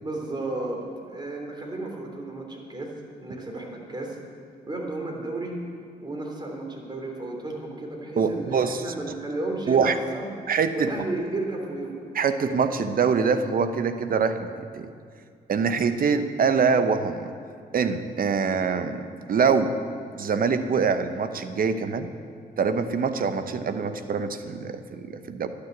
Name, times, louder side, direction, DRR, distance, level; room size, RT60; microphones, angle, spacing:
voice 1, 0.0-0.8 1.1-2.9 3.2-4.2 4.7-5.6 6.0-10.3 10.7-12.0, right 2 dB, 25° right, 0 dB, 3.1 m, -33 dB
voice 2, 8.2-8.8 9.7-10.0 10.5-10.9 12.1-14.9 15.5-17.3 17.7-19.8 20.2-22.1 22.6-25.5, right 5 dB, 50° right, 10 dB, 0.9 m, -24 dB
11.5 x 6.8 x 9.2 m, 2.2 s
supercardioid pair, 60°, 18 cm